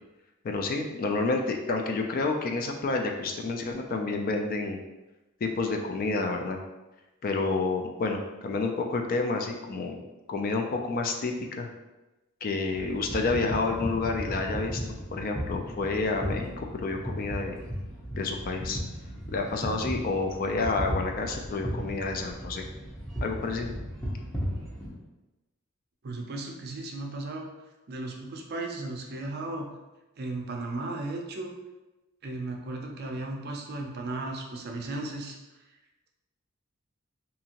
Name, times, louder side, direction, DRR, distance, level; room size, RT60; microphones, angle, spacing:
voice 1, 0.4-4.8 5.4-6.6 7.2-10.0 10.3-11.7 12.4-17.6 18.1-18.8 19.3-22.6 23.2-23.7, left 3 dB, 40° left, 3 dB, 0.3 m, -29 dB
sound 1, 12.7-24.9, equal, 5° left, 0.6 m, -36 dB
voice 2, 26.0-27.5 27.9-29.7 30.2-31.5 32.2-35.4, right 2 dB, 50° right, 1 dB, 0.4 m, -35 dB
2.8 x 2.5 x 2.8 m, 1.1 s
head